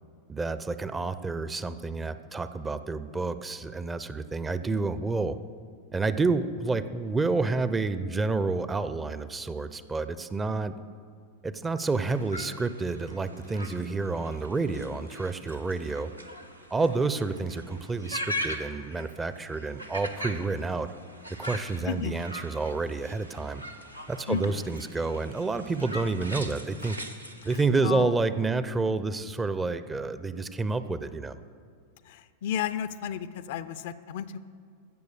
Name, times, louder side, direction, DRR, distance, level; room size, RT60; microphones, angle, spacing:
voice 1, 0.3-5.4 5.9-10.8 11.4-16.1 16.7-20.9 21.4-23.6 24.1-27.0 27.4-31.4, right 3 dB, 15° right, 13 dB, 0.5 m, -29 dB
sound 1, 11.8-27.7, equal, 90° right, 0.9 m, -41 dB
voice 2, 21.9-22.2 24.3-24.6 27.8-28.1 32.1-34.4, left 9 dB, 55° left, 13 dB, 0.5 m, -32 dB
15.5 x 6.6 x 6.6 m, 2.2 s
figure-of-eight pair, 90°, 0 cm